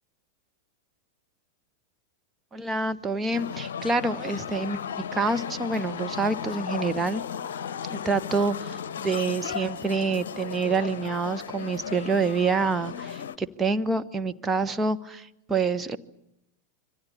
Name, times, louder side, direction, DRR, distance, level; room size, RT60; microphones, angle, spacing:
voice 1, 2.5-4.8 5.1-7.2 7.9-16.0, right 4 dB, 15° right, 9 dB, 1.1 m, -27 dB
sound 1, 3.3-13.4, left 8 dB, 60° left, 0.9 m, -35 dB
26.5 x 25.0 x 7.1 m, 0.84 s
figure-of-eight pair, 90°, 0 cm